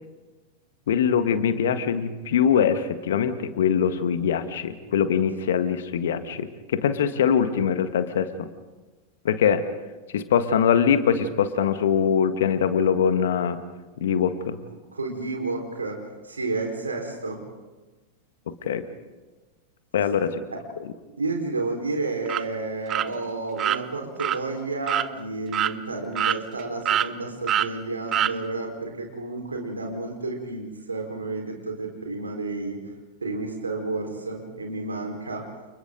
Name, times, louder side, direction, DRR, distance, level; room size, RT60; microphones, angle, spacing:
voice 1, 0.9-8.5 9.2-9.6 10.1-13.6 14.0-14.5 18.6-18.8 19.9-20.4, left 7 dB, 60° left, 10 dB, 1.6 m, -22 dB
voice 2, 14.9-17.4 20.5-20.6 21.2-32.8 33.2-35.5, right 3 dB, 75° right, 2 dB, 4.6 m, -31 dB
sound 1, 22.3-22.4 22.9-23.1 23.6-23.8 24.2-24.4 24.9-25.1 25.5-25.7 26.2-26.6 26.9-27.1 27.5-27.7 28.1-28.3, right 11 dB, 30° right, 0.7 m, -24 dB
29.5 x 29.5 x 3.9 m, 1.2 s
figure-of-eight pair, 90°, 0 cm